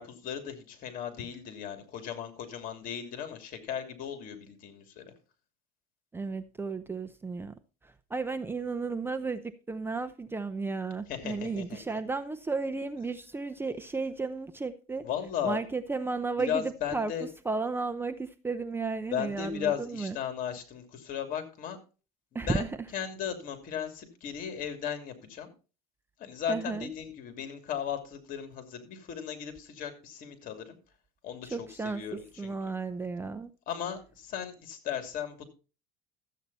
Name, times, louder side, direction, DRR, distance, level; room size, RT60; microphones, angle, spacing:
voice 1, 0.0-5.0 11.1-11.8 15.0-15.6 16.5-17.3 19.1-21.8 22.3-25.5 26.2-30.8 31.2-32.5 33.7-35.4, left 9 dB, 50° left, 2.8 m, -36 dB
voice 2, 6.1-7.5 7.8-9.4 9.7-15.1 15.4-20.2 22.3-22.8 26.5-26.9 31.4-32.0 32.4-33.5, right 4 dB, 15° right, 0.7 m, -33 dB
13.5 x 8.4 x 4.1 m
supercardioid pair, 125°, 18 cm